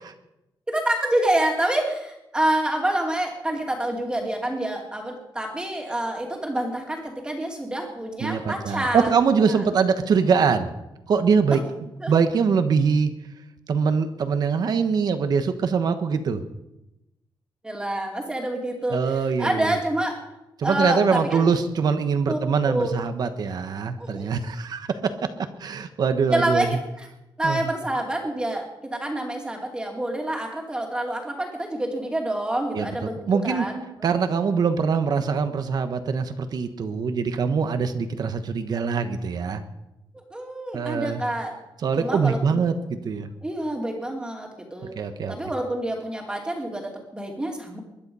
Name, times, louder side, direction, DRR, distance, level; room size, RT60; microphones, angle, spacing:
voice 1, 0.7-9.1 9.5-9.6 12.0-12.1 17.6-20.2 20.6-21.5 22.3-22.4 22.6-23.0 24.0-24.3 26.3-27.1 27.4-33.8 40.3-41.5 42.0-42.6 43.4-44.9 45.3-47.8, right 1 dB, 10° right, 1 dB, 2.7 m, -27 dB
voice 2, 8.2-10.7 11.1-11.6 12.1-13.1 13.7-16.4 18.9-19.8 20.6-25.1 25.6-26.7 27.4-27.7 32.7-33.7 34.0-39.6 40.7-41.2 41.8-43.3 44.9-45.4, right 5 dB, 50° right, 9 dB, 1.1 m, -23 dB
21.5 x 11.5 x 5.5 m, 0.91 s
wide cardioid pair, 175°, 8 cm